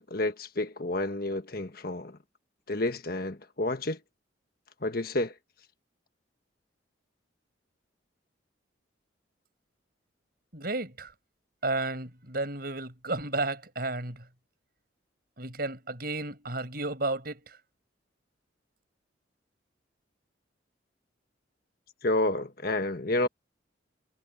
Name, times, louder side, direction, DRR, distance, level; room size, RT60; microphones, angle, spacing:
voice 1, 0.0-2.1 2.7-4.0 4.8-5.3 22.0-23.3, left 2 dB, 50° left, 1.4 m, -30 dB
voice 2, 10.5-11.1 11.6-14.3 15.4-17.6, right 2 dB, 50° right, 6.1 m, -32 dB
head